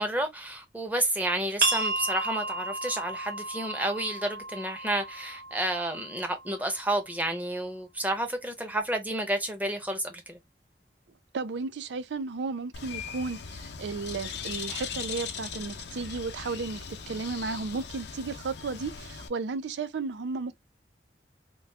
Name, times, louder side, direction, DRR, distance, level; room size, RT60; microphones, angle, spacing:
voice 1, 0.0-10.4, right 1 dB, 10° right, 0.7 m, -30 dB
sound 1, 1.6-7.0, right 3 dB, 50° right, 1.0 m, -33 dB
voice 2, 11.3-20.6, right 4 dB, 85° right, 0.4 m, -34 dB
Bird, 12.7-19.3, left 6 dB, 80° left, 0.6 m, -39 dB
3.0 x 2.3 x 3.3 m
head